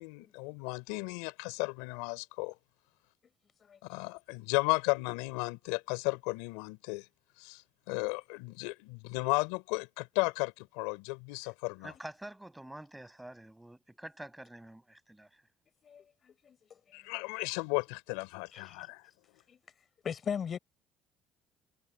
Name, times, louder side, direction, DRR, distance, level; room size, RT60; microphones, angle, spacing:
voice 1, 0.0-2.6 3.8-7.1 7.4-11.9 16.9-19.1, left 28 dB, 90° left, 4.1 m, -34 dB
voice 2, 11.8-15.3, right 1 dB, 10° right, 7.8 m, -47 dB
voice 3, 15.8-16.6 18.5-18.8 19.5-19.6 20.0-20.6, left 7 dB, 45° left, 5.9 m, -38 dB
supercardioid pair, 80°, 0 cm